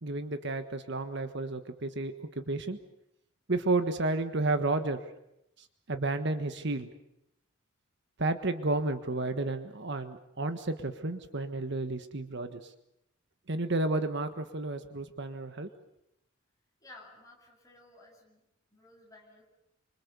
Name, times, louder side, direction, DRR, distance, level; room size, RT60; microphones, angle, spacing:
voice 1, 0.0-2.8 3.5-5.0 5.6-6.9 8.2-12.7 13.5-15.7, right 2 dB, 55° right, 9 dB, 1.4 m, -32 dB
voice 2, 16.8-18.4 18.7-19.4, left 2 dB, 15° left, -1 dB, 7.6 m, -54 dB
27.5 x 25.5 x 6.9 m, 0.82 s
head